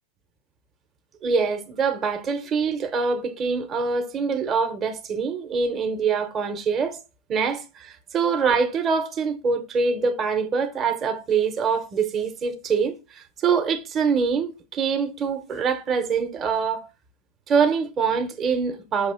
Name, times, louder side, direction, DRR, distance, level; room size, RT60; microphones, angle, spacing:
voice 1, 1.2-7.0 7.3-16.9 17.5-19.1, right 5 dB, 20° right, 0.8 m, -24 dB
6.4 x 2.9 x 5.6 m
supercardioid pair, 155°, 0 cm